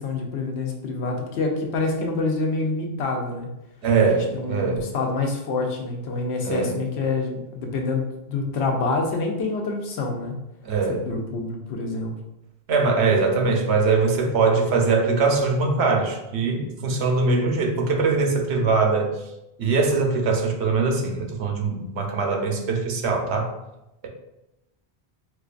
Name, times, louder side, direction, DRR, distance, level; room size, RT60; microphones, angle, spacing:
voice 1, 0.0-3.5 4.0-10.4 10.9-12.1, left 3 dB, 80° left, 2 dB, 0.9 m, -27 dB
voice 2, 3.8-4.9 6.4-6.7 10.6-11.1 12.7-19.2 19.6-23.5, right 4 dB, 85° right, 2 dB, 0.9 m, -22 dB
4.3 x 2.4 x 2.4 m, 0.91 s
omnidirectional pair, 1.1 m